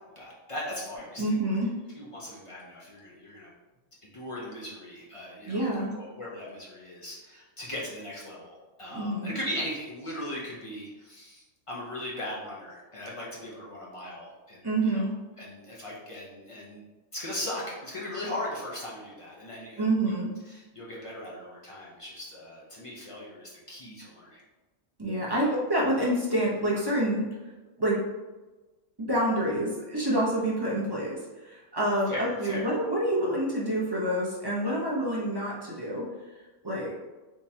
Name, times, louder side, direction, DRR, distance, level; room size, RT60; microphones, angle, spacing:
voice 1, 0.2-1.4 2.0-3.5 4.0-14.7 14.9-15.1 15.4-16.8 17.1-20.1 20.5-24.4 25.3-25.5 32.1-32.7, left 1 dB, 35° left, -5 dB, 0.5 m, -38 dB
voice 2, 1.2-1.7 5.5-5.9 8.9-9.3 14.6-15.1 19.8-20.3 25.0-27.3 27.8-28.0 29.0-36.1 36.6-36.9, right 1 dB, 25° right, -6 dB, 0.6 m, -27 dB
3.7 x 3.0 x 2.7 m, 1.2 s
omnidirectional pair, 1.4 m